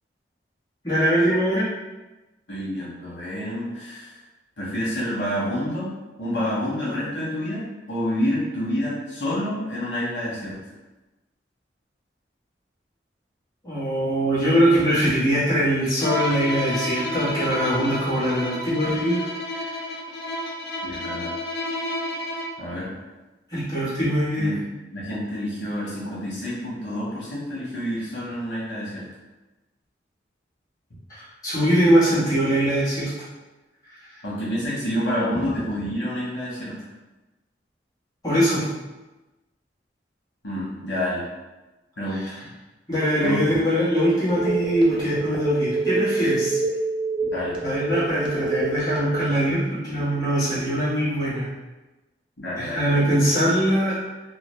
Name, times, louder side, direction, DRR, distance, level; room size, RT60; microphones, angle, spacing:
voice 1, 0.8-1.7 13.6-19.2 19.6-19.7 23.5-24.5 31.1-33.1 38.2-38.7 42.9-46.6 47.6-51.5 52.6-54.0, equal, 20° left, -13 dB, 1.3 m, -22 dB
voice 2, 2.5-4.2 4.6-5.9 6.2-10.6 20.8-21.3 22.6-22.9 24.4-24.6 24.9-29.0 34.2-36.7 40.4-41.2 42.0-42.4 43.2-43.5 47.3-47.6 52.4-53.1, equal, 85° left, -7 dB, 1.2 m, -28 dB
Bowed string instrument, 16.0-22.7, left 1 dB, 55° left, 0.4 m, -30 dB
Telephone, 44.3-49.5, right 3 dB, 25° right, 0.4 m, -26 dB
2.8 x 2.4 x 3.1 m, 1.1 s
head